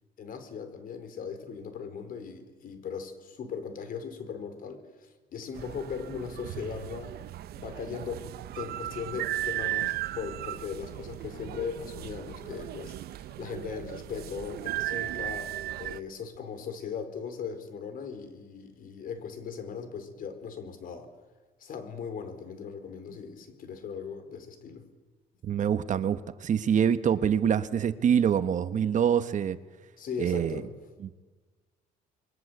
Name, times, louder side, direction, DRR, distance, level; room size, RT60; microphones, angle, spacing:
voice 1, 0.2-7.2 7.5-8.3 8.6-21.1 21.6-24.8 30.0-30.7, left 6 dB, 55° left, 9 dB, 4.5 m, -38 dB
sound 1, 5.6-16.0, right 14 dB, 70° right, 0.8 m, -36 dB
voice 2, 25.4-29.6 30.2-30.6 31.0-31.2, right 8 dB, 50° right, 11 dB, 1.4 m, -25 dB
28.0 x 22.5 x 8.1 m, 1.3 s
cardioid pair, 110°, 17 cm